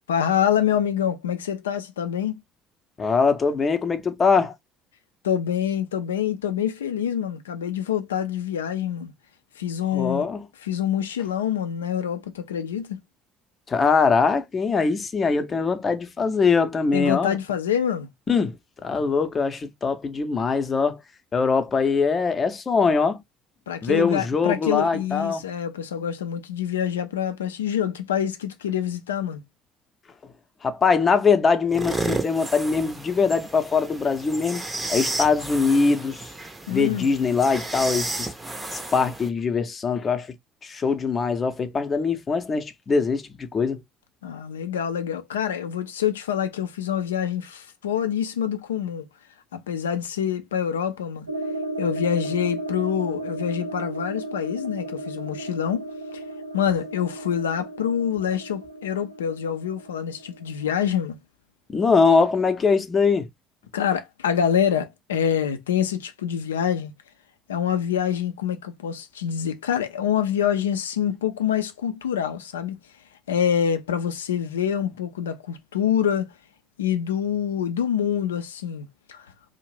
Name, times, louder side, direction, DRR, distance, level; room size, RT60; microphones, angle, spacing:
voice 1, 0.1-2.4 5.2-9.1 9.6-10.3 10.6-13.0 16.9-18.1 23.7-29.4 36.7-37.1 44.2-49.1 49.5-51.3 51.8-55.9 56.5-61.2 63.7-66.9 67.5-72.8 73.3-76.3 76.8-79.3, left 9 dB, 80° left, 0.4 m, -26 dB
voice 2, 3.0-4.5 9.9-10.4 13.7-17.4 18.3-21.0 21.3-23.2 23.8-25.4 30.6-36.3 36.7-38.3 38.7-40.3 40.6-43.8 61.7-63.3, left 5 dB, 30° left, 0.6 m, -22 dB
sound 1, 31.7-39.3, right 2 dB, 20° right, 0.6 m, -32 dB
sound 2, 51.3-60.8, right 2 dB, 85° right, 0.4 m, -34 dB
2.5 x 2.1 x 3.1 m
figure-of-eight pair, 55°, 0 cm